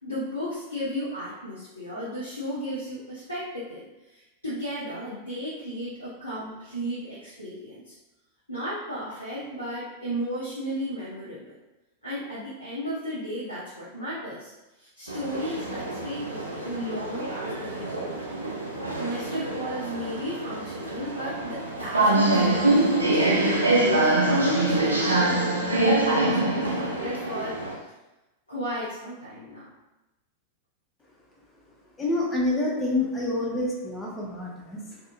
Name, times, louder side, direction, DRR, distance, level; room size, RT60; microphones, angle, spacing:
voice 1, 0.0-7.9 8.5-11.5 12.0-14.5 14.8-18.4 19.0-23.1 23.7-27.9 28.5-29.7, equal, 85° left, -9 dB, 0.7 m, -34 dB
sound 1, 15.1-27.7, right 2 dB, 80° right, 0.4 m, -25 dB
voice 2, 32.0-35.0, left 2 dB, 15° left, -3 dB, 0.7 m, -27 dB
2.7 x 2.5 x 2.4 m, 1.0 s
figure-of-eight pair, 90°, 0 cm